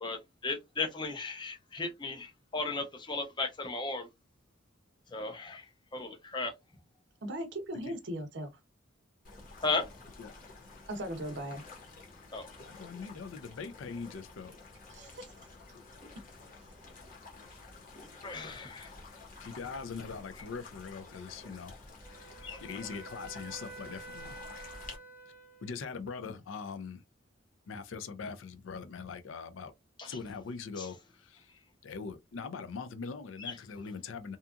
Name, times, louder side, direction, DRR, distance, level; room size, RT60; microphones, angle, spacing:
voice 1, 0.0-4.1 5.1-5.7 5.9-6.5 9.6-9.9 12.3-12.5 18.2-18.9 22.4-22.6 30.0-30.1 30.8-30.9 33.4-33.5, left 3 dB, 25° left, 0.5 m, -35 dB
voice 2, 7.2-8.5 10.9-11.6 14.9-15.3, right 1 dB, 60° right, 0.5 m, -38 dB
sound 1, 9.2-25.0, left 3 dB, 40° left, 0.9 m, -51 dB
voice 3, 12.6-14.5 19.4-21.8 22.1-24.4 25.6-27.0 27.7-29.7 30.0-31.5 31.8-34.4, left 5 dB, 75° left, 0.4 m, -42 dB
Wind instrument woodwind instrument, 22.0-26.1, right 2 dB, 15° right, 0.8 m, -49 dB
2.7 x 2.3 x 2.4 m
head